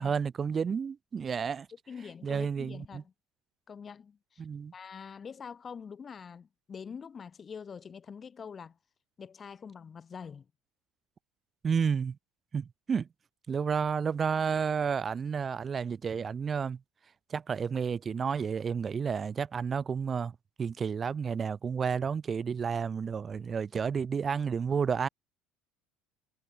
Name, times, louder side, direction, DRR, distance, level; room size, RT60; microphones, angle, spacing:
voice 1, 0.0-1.7 2.2-3.0 4.4-4.7 11.6-12.2 12.5-13.1 13.5-16.8 17.3-25.1, right 6 dB, 35° right, 1.0 m, -31 dB
voice 2, 1.9-3.1 3.7-4.4 4.7-8.8 9.2-10.4, left 6 dB, 35° left, 0.9 m, -45 dB
hypercardioid pair, 65°, 0 cm